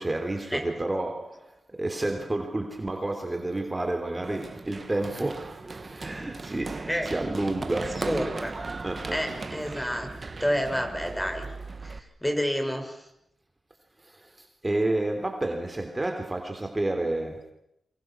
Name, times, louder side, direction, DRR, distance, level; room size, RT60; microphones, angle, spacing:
voice 1, 0.0-8.2 8.8-9.3 14.0-17.5, right 2 dB, 25° right, 3.4 m, -30 dB
Run, 4.2-12.0, right 3 dB, 45° right, 2.0 m, -37 dB
voice 2, 8.0-8.5 9.1-10.1 10.4-11.5 11.8-13.1, equal, 10° left, 5.9 m, -29 dB
28.5 x 24.5 x 6.3 m
cardioid pair, 55°, 0 cm